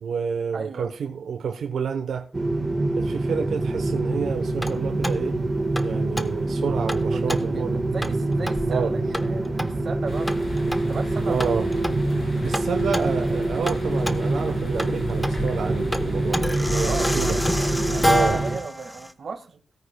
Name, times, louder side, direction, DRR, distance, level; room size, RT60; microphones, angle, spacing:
voice 1, 0.0-2.3 3.0-5.3 5.8-7.8 8.7-8.9 11.3-11.7 12.4-17.4 18.0-18.4, right 6 dB, 90° right, 0.9 m, -29 dB
voice 2, 0.5-0.9 7.1-10.5 10.9-11.5 16.7-19.6, right 5 dB, 55° right, 1.7 m, -35 dB
sound 1, 2.3-18.6, right 2 dB, 25° right, 1.5 m, -25 dB
sound 2, 4.1-19.1, equal, 5° left, 0.8 m, -31 dB
sound 3, 10.1-18.5, left 2 dB, 30° left, 6.6 m, -34 dB
17.5 x 9.6 x 2.2 m
wide cardioid pair, 125°, 0 cm